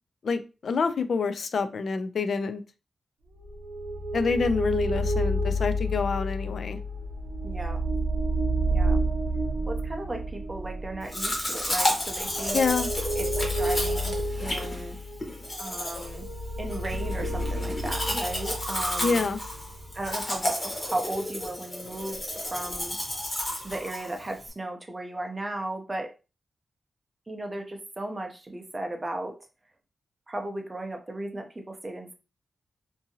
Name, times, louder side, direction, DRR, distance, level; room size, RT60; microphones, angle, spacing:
voice 1, 0.2-2.6 4.1-6.8 12.5-12.9 19.0-19.4, left 5 dB, 60° left, 11 dB, 0.3 m, -27 dB
sound 1, 3.4-20.1, right 1 dB, 85° right, 0.7 m, -30 dB
voice 2, 7.4-7.8 8.7-9.0 9.7-12.6 13.2-15.0 15.6-16.3 16.6-19.3 19.9-22.2 22.5-23.0 23.6-26.1 27.3-29.4 30.3-32.1, right 1 dB, 20° right, 3 dB, 0.5 m, -35 dB
Domestic sounds home sounds, 11.1-24.5, left 1 dB, 25° left, 0.9 m, -32 dB
2.7 x 2.6 x 2.7 m, 0.31 s
wide cardioid pair, 155°, 0 cm